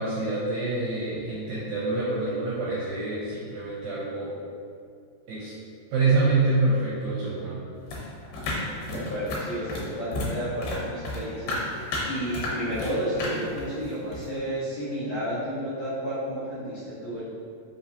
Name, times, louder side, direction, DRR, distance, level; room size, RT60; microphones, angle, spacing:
voice 1, 0.0-4.4 5.3-5.6 5.9-7.6 8.9-9.0, right 3 dB, 75° right, -8 dB, 1.8 m, -26 dB
sound 1, 7.9-10.4 10.6-12.9 13.2-14.3, left 1 dB, 90° left, 2.6 m, -32 dB
voice 2, 8.9-17.2, equal, 70° left, -12 dB, 1.6 m, -31 dB
5.5 x 3.0 x 2.7 m, 2.3 s
omnidirectional pair, 4.0 m